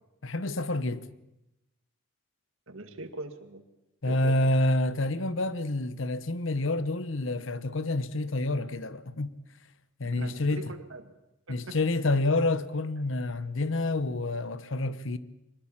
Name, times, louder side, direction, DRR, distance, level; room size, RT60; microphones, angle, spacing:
voice 1, 0.2-1.1 4.0-9.4 10.0-10.6 11.5-15.2, left 2 dB, 75° left, 1.0 m, -28 dB
voice 2, 2.7-3.6 4.1-4.4 10.0-11.1 11.5-11.8, right 2 dB, 85° right, 2.2 m, -41 dB
23.5 x 21.0 x 7.4 m
head